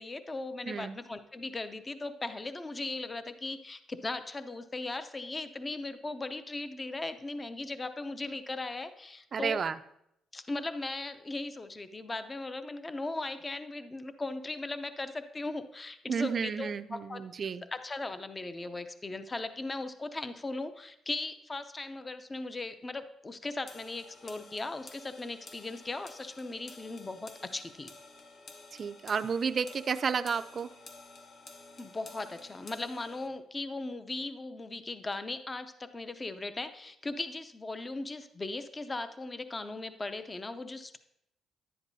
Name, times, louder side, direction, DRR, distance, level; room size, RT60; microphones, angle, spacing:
voice 1, 0.0-9.6 10.3-17.2 17.6-27.9 31.8-41.0, left 2 dB, 25° left, 10 dB, 0.6 m, -38 dB
voice 2, 0.7-1.0 9.3-9.7 16.1-17.6 28.7-30.7, right 6 dB, 45° right, 12 dB, 0.4 m, -31 dB
sound 1, 23.7-33.3, left 3 dB, 50° left, 1.1 m, -52 dB
10.5 x 9.8 x 2.7 m, 0.78 s
cardioid pair, 90°, 0 cm